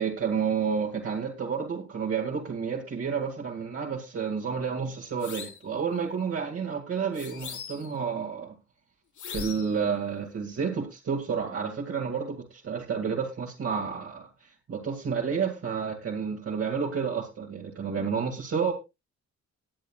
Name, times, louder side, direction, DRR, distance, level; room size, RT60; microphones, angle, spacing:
voice 1, 0.0-8.5 9.3-14.3 14.7-18.7, right 6 dB, 50° right, 0 dB, 2.2 m, -30 dB
sound 1, 5.2-5.7 7.1-8.0 9.2-9.8, left 7 dB, 80° left, 4.2 m, -39 dB
19.0 x 9.3 x 2.3 m, 0.25 s
wide cardioid pair, 145°, 29 cm